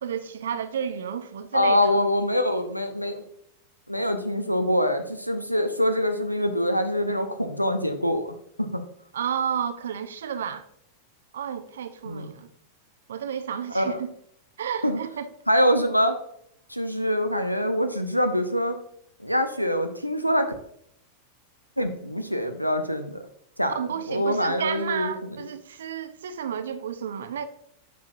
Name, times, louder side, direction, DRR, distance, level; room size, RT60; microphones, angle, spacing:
voice 1, 0.0-2.0 9.1-10.7 11.3-12.5 13.1-14.1 14.6-15.3 23.7-27.5, right 8 dB, 65° right, 0.6 m, -31 dB
voice 2, 1.5-3.2 3.9-8.8 12.0-12.3 13.7-14.0 14.8-15.0 15.5-16.2 16.7-18.8 19.2-20.5 21.8-23.2 23.6-23.8 24.1-25.1, equal, 90° left, 0.7 m, -24 dB
9.4 x 6.3 x 2.6 m
figure-of-eight pair, 90°, 0 cm